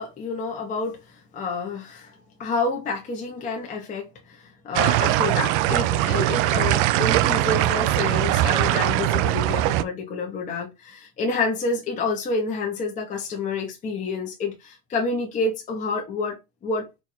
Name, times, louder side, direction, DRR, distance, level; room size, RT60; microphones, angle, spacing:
voice 1, 0.0-2.1 2.4-17.0, left 3 dB, 20° left, 0.9 m, -29 dB
sound 1, 4.7-9.8, right 15 dB, 65° right, 0.5 m, -21 dB
4.6 x 2.5 x 4.1 m
cardioid pair, 180°, 38 cm